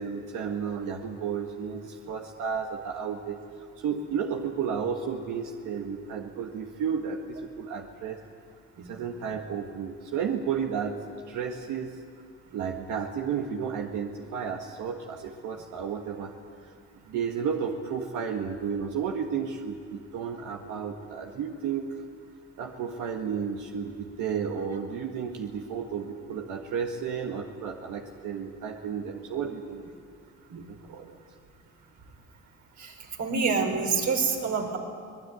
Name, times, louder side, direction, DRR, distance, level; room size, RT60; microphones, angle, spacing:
voice 1, 0.0-3.4 3.8-8.2 8.8-11.0 11.3-11.9 12.5-16.3 17.1-21.9 22.6-29.8 30.5-31.2, right 7 dB, 85° right, 2 dB, 1.7 m, -32 dB
voice 2, 32.8-34.8, right 5 dB, 65° right, 2 dB, 4.6 m, -27 dB
25.0 x 19.5 x 9.5 m, 2.2 s
cardioid pair, 90°, 30 cm